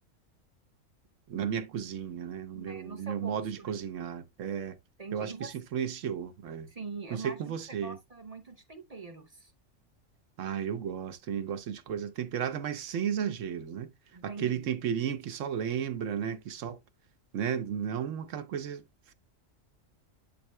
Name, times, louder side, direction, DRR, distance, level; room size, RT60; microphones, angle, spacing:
voice 1, 1.3-4.8 5.1-6.7 7.1-8.0 10.4-13.9 14.2-16.8 17.3-19.1, right 8 dB, 75° right, 1.1 m, -34 dB
voice 2, 2.5-3.8 5.0-5.5 6.7-7.5 7.8-9.5 14.1-14.7, right 4 dB, 35° right, 0.7 m, -43 dB
10.5 x 4.2 x 2.2 m
omnidirectional pair, 1.3 m